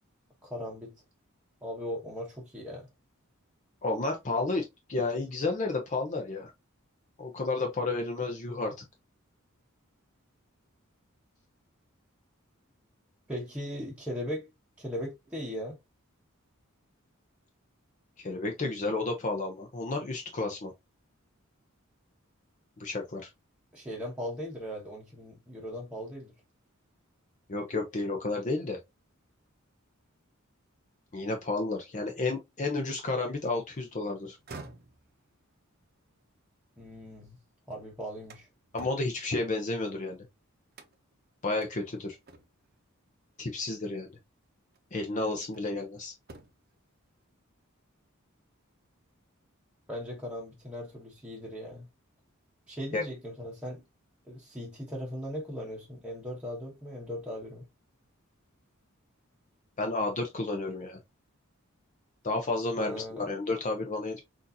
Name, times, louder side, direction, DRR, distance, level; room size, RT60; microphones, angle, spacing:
voice 1, 0.4-1.0 1.6-2.9 13.3-14.5 14.8-15.8 23.7-26.3 36.8-37.4 37.7-38.5 49.9-51.9 52.7-53.8 54.3-57.7 62.8-63.3, equal, 5° right, 1.0 m, -38 dB
voice 2, 3.8-6.5 7.2-8.8 18.2-20.7 22.8-23.3 27.5-28.8 31.1-34.4 38.7-40.2 41.4-42.2 43.4-44.1 44.9-46.2 52.9-53.1 59.8-61.0 62.2-64.2, left 3 dB, 35° left, 0.7 m, -31 dB
sound 1, 34.2-37.4 37.8-40.2 40.7-41.2 41.6-41.7 42.3-42.8 44.0-44.1 44.7-45.9 46.2-46.8, right 3 dB, 45° right, 0.8 m, -51 dB
6.2 x 2.6 x 2.7 m
head